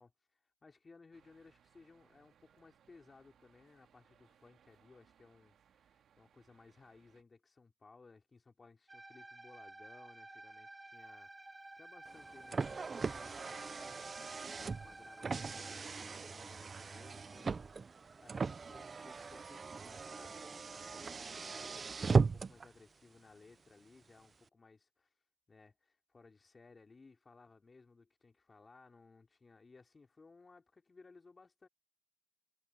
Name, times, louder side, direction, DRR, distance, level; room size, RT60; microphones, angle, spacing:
voice 1, 0.0-17.7 18.2-25.1 25.5-31.7, left 4 dB, 25° left, 3.2 m, -61 dB
sound 1, 1.1-7.2, right 8 dB, 55° right, 2.0 m, -70 dB
sound 2, 8.9-15.8, right 2 dB, 15° right, 1.8 m, -53 dB
Car, 12.1-22.7, right 4 dB, 30° right, 0.4 m, -38 dB
cardioid pair, 105°, 0 cm